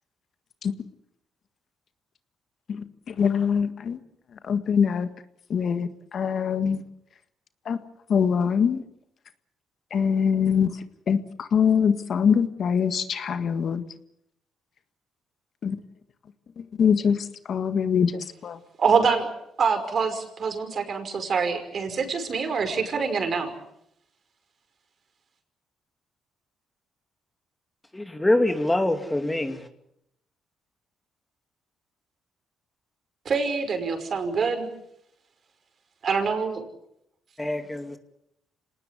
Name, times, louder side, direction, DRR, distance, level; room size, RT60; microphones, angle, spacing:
voice 1, 2.7-4.0 4.5-5.1 5.5-6.8 7.7-7.8 8.1-8.8 9.9-10.7 11.1-13.8 15.6-15.8 16.8-18.6, left 7 dB, 55° left, 10 dB, 1.7 m, -23 dB
voice 2, 18.8-19.3 19.6-23.5 33.3-34.7 36.0-36.7, right 5 dB, 50° right, 7 dB, 5.5 m, -25 dB
voice 3, 27.9-29.7 37.4-38.0, left 1 dB, 10° left, 7 dB, 2.5 m, -24 dB
27.0 x 19.0 x 8.4 m, 0.77 s
cardioid pair, 90°, 0 cm